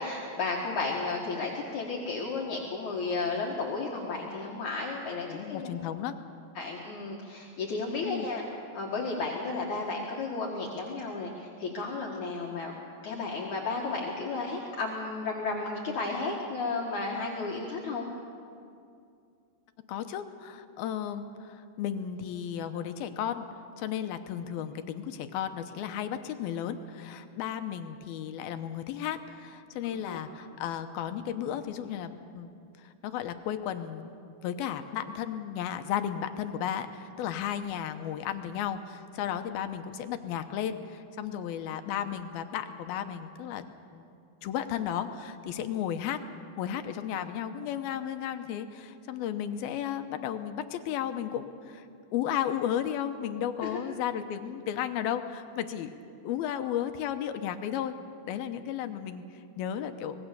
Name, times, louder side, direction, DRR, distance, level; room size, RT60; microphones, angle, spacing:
voice 1, 0.0-5.7 6.5-8.4 8.7-12.7 13.0-18.1 29.9-30.2 53.6-53.8, left 3 dB, 55° left, -2 dB, 2.9 m, -33 dB
voice 2, 5.3-6.1 8.0-8.3 19.9-23.5 23.8-34.1 34.4-43.6 43.9-44.1 44.4-46.2 46.6-51.9 52.1-55.9 56.2-57.9 58.3-59.2 59.6-60.2, left 9 dB, 80° left, 8 dB, 2.8 m, -34 dB
25.5 x 19.5 x 6.8 m, 2.5 s
omnidirectional pair, 4.4 m